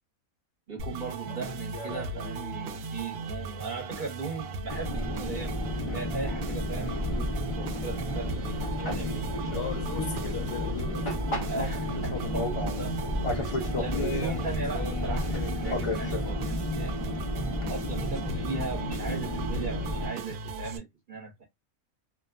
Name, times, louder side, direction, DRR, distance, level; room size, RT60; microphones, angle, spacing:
voice 1, 0.7-5.6 5.9-9.3 11.5-13.0 13.3-17.0 17.7-21.4, right 4 dB, 40° right, 0.9 m, -38 dB
sound 1, 0.8-20.8, right 4 dB, 70° right, 0.6 m, -38 dB
voice 2, 1.3-2.7 9.5-11.5, left 6 dB, 65° left, 1.0 m, -40 dB
Fixed-wing aircraft airplane, 4.7-20.1, left 1 dB, 40° left, 0.4 m, -31 dB
2.6 x 2.2 x 2.4 m
omnidirectional pair, 1.5 m